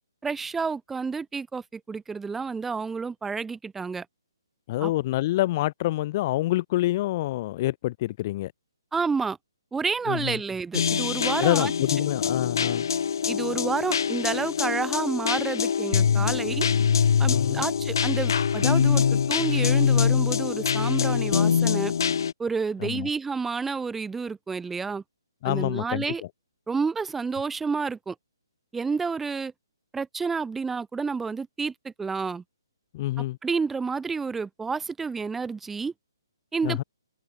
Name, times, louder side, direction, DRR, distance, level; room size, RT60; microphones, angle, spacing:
voice 1, 0.2-4.1 4.8-4.9 8.9-9.4 9.7-11.7 13.3-16.7 17.2-21.9 22.4-25.0 25.4-26.2 26.7-28.1 28.7-29.5 29.9-32.4 33.4-35.9 36.5-36.8, right 5 dB, 5° right, 5.5 m, -30 dB
voice 2, 4.7-8.5 10.1-10.4 11.4-12.9 17.3-17.7 22.8-23.1 25.4-26.0 32.9-33.4 36.6-36.8, left 16 dB, 35° left, 5.8 m, -27 dB
sound 1, 10.7-22.3, left 7 dB, 60° left, 3.9 m, -24 dB
figure-of-eight pair, 140°, 2 cm